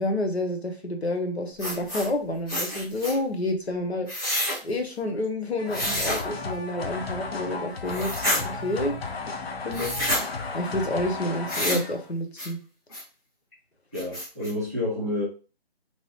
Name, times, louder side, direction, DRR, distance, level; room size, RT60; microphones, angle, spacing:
voice 1, 0.0-4.1 4.6-9.0 9.6-10.0 10.5-12.6, left 1 dB, 90° left, 4 dB, 1.0 m, -29 dB
sound 1, 1.6-2.1 2.5-3.2 4.1-4.6 5.7-6.2 7.9-8.4 9.7-10.2 11.5-11.9 12.4-12.5 12.9-13.0 13.5-13.6 13.9-14.5, left 1 dB, 20° left, 1.3 m, -28 dB
sound 2, 5.6-12.1, left 3 dB, 70° left, 0.7 m, -34 dB
voice 2, 13.9-15.2, left 1 dB, 15° right, -5 dB, 0.5 m, -29 dB
2.9 x 2.4 x 3.1 m, 0.34 s
figure-of-eight pair, 160°, 31 cm